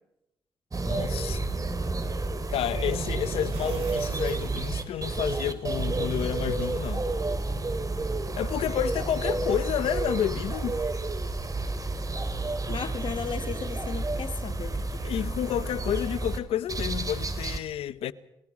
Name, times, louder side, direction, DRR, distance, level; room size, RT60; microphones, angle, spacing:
sound 1, 0.7-16.4 16.7-17.6, right 3 dB, 35° right, 2.6 m, -30 dB
voice 1, 0.8-1.6 2.5-7.1 8.4-10.8 15.0-18.1, left 11 dB, 85° left, 0.8 m, -30 dB
sound 2, 3.5-7.1, right 6 dB, 80° right, 4.5 m, -52 dB
voice 2, 12.7-15.3, left 6 dB, 60° left, 1.5 m, -36 dB
27.5 x 19.5 x 4.9 m
supercardioid pair, 50°, 10 cm